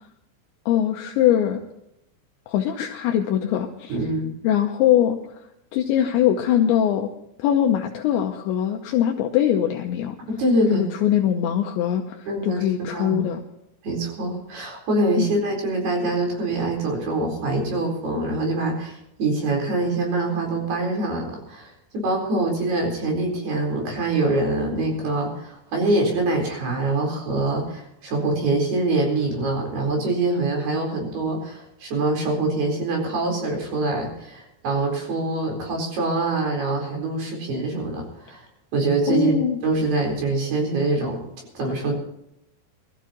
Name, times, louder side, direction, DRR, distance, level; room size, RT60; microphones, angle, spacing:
voice 1, 0.7-1.6 2.5-4.0 4.4-5.2 5.7-7.1 7.4-10.2 10.7-13.4 15.2-15.3 39.1-39.6, left 10 dB, 75° left, 2 dB, 3.0 m, -22 dB
voice 2, 3.9-4.3 10.3-10.8 12.3-13.2 13.8-38.4 38.7-39.4 39.6-41.2 41.5-41.9, right 2 dB, 55° right, 1 dB, 6.0 m, -24 dB
23.5 x 14.0 x 3.0 m, 0.81 s
omnidirectional pair, 5.7 m